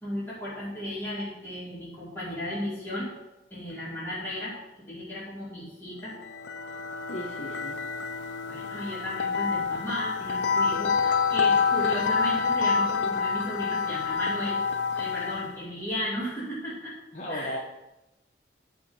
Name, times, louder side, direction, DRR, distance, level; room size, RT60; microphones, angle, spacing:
voice 1, 0.0-3.1 3.5-4.5 4.9-6.2 8.5-14.6 15.0-16.9 17.3-17.6, equal, 10° left, -12 dB, 2.5 m, -35 dB
sound 1, 6.1-15.6, left 5 dB, 70° left, 0.5 m, -27 dB
voice 2, 7.1-7.8 17.1-17.6, left 1 dB, 40° left, -3 dB, 1.1 m, -35 dB
12.0 x 4.5 x 5.5 m, 0.98 s
head